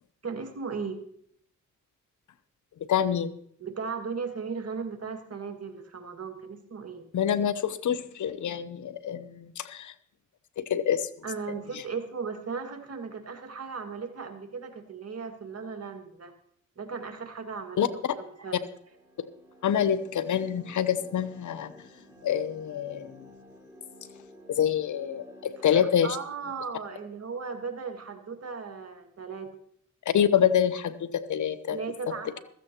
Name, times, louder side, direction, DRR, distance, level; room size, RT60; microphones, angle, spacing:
voice 1, 0.2-1.0 3.6-7.1 11.2-16.3 16.8-18.6 25.6-29.5 31.7-32.4, right 5 dB, 50° right, 5 dB, 2.1 m, -37 dB
voice 2, 2.9-3.3 7.1-9.9 10.6-11.1 17.8-17.9 19.6-21.7 22.2-23.2 24.5-26.1 30.1-31.8, left 9 dB, 70° left, 13 dB, 0.9 m, -26 dB
sound 1, 18.2-25.7, equal, 10° right, 4.0 m, -53 dB
15.5 x 14.0 x 3.0 m, 0.68 s
cardioid pair, 60°, 31 cm